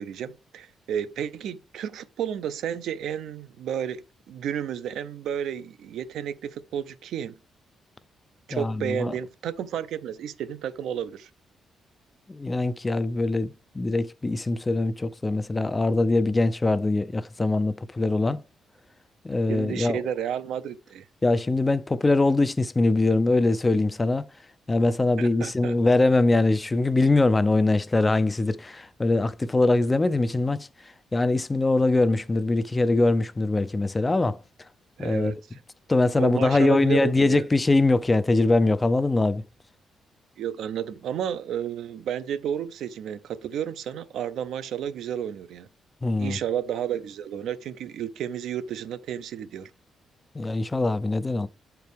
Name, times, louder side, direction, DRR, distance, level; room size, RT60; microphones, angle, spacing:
voice 1, 0.0-7.4 8.5-11.3 19.5-21.0 25.2-25.7 35.0-35.6 36.2-37.4 40.4-45.7 46.2-49.7, right 9 dB, 80° right, 0.5 m, -32 dB
voice 2, 8.5-9.1 12.3-18.4 19.2-20.0 21.2-24.3 24.7-30.7 31.1-34.4 35.0-35.3 35.9-39.4 46.0-46.4 50.4-51.5, left 2 dB, 15° left, 0.3 m, -22 dB
8.2 x 4.5 x 3.4 m
cardioid pair, 160°, 0 cm